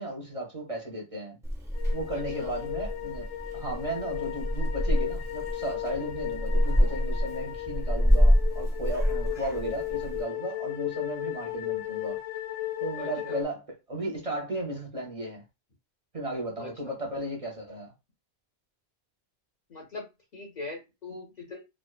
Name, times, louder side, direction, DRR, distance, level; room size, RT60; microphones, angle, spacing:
voice 1, 0.0-1.4 1.9-3.3 3.5-12.2 12.8-15.4 16.1-17.9, right 1 dB, 35° right, 0.7 m, -35 dB
Purr / Meow, 1.4-10.2, equal, 5° right, 0.5 m, -27 dB
sound 1, 1.7-13.4, left 14 dB, 90° left, 1.3 m, -36 dB
voice 2, 2.1-2.5 6.0-6.4 9.2-9.4 13.0-13.4 16.6-16.9 19.7-20.0 20.3-21.6, left 2 dB, 45° left, 0.8 m, -42 dB
2.4 x 2.3 x 2.3 m
omnidirectional pair, 1.1 m